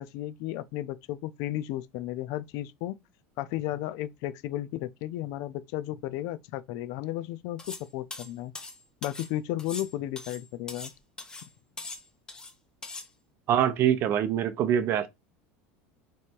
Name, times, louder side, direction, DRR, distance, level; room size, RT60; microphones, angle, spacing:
voice 1, 0.0-3.0 3.4-8.5 9.0-10.9, left 14 dB, 60° left, 0.4 m, -34 dB
sound 1, 7.6-7.9 8.1-9.3 9.6-10.9 11.2-11.5 11.8-12.5 12.8-13.1, left 3 dB, 10° left, 0.8 m, -41 dB
voice 2, 13.5-15.1, right 10 dB, 40° right, 0.6 m, -24 dB
3.3 x 3.1 x 4.5 m
supercardioid pair, 150°, 6 cm